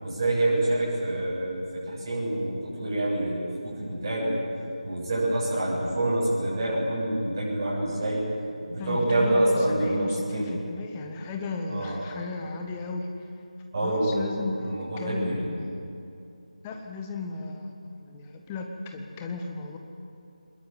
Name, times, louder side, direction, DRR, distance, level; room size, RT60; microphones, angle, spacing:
voice 1, 0.0-4.4 4.8-8.3 8.7-10.5 11.7-11.9 13.7-14.2 14.6-15.5, right 1 dB, 30° right, -7 dB, 7.7 m, -27 dB
voice 2, 8.8-13.1 13.8-15.7 16.6-19.8, left 3 dB, 10° left, 3 dB, 1.3 m, -35 dB
23.5 x 21.0 x 7.6 m, 2.7 s
figure-of-eight pair, 160°, 4 cm